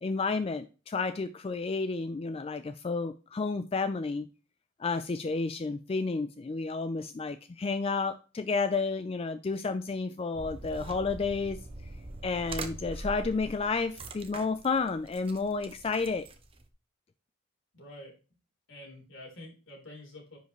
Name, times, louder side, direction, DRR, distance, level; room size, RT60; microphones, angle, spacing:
voice 1, 0.0-4.3 4.8-11.6 12.2-16.3, left 4 dB, 25° left, 0.3 m, -31 dB
sound 1, 10.3-16.7, right 2 dB, 25° right, 0.8 m, -43 dB
voice 2, 17.7-18.1 18.7-20.4, left 1 dB, 60° left, 3.7 m, -47 dB
10.0 x 5.3 x 3.1 m
head